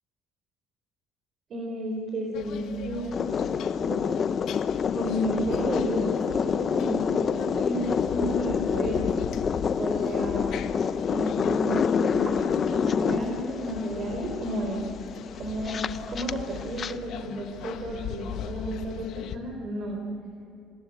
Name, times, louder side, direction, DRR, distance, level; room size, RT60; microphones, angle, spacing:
voice 1, 1.5-3.4 3.8-4.0 4.9-9.2 9.8-10.7 11.1-14.8 15.3-20.0, right 1 dB, 45° right, 1 dB, 4.3 m, -32 dB
sound 1, 2.3-19.4, left 9 dB, 60° left, 1.5 m, -40 dB
sound 2, 3.1-16.9, left 7 dB, 35° left, 0.7 m, -27 dB
27.5 x 18.5 x 9.0 m, 2.7 s
cardioid pair, 140°, 0 cm